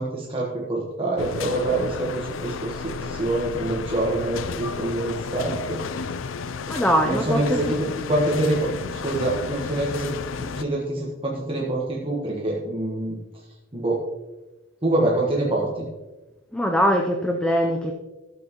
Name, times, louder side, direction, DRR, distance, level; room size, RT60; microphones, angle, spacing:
voice 1, 0.0-6.0 7.0-8.6 8.8-10.1 10.4-13.2 13.7-14.0 14.8-15.9, right 2 dB, 30° right, -3 dB, 1.2 m, -26 dB
sound 1, 1.2-10.6, left 5 dB, 80° left, 0.5 m, -32 dB
voice 2, 6.7-7.7 16.5-17.9, equal, 5° left, 3 dB, 0.6 m, -22 dB
13.0 x 7.7 x 3.0 m, 1.1 s
head